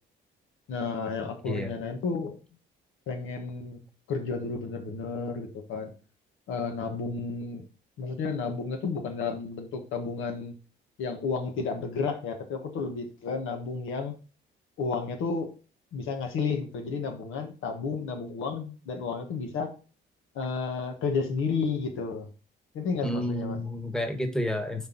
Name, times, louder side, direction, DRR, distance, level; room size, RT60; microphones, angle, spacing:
voice 1, 0.7-2.4 3.1-3.8 4.1-5.9 6.5-7.6 8.0-10.5 11.0-14.1 14.8-15.5 15.9-19.7 20.3-22.3 22.7-23.6, left 4 dB, 85° left, 4 dB, 1.4 m, -32 dB
voice 2, 23.0-24.9, left 1 dB, 5° left, 6 dB, 1.2 m, -30 dB
5.3 x 4.5 x 3.9 m, 0.35 s
cardioid pair, 90°, 20 cm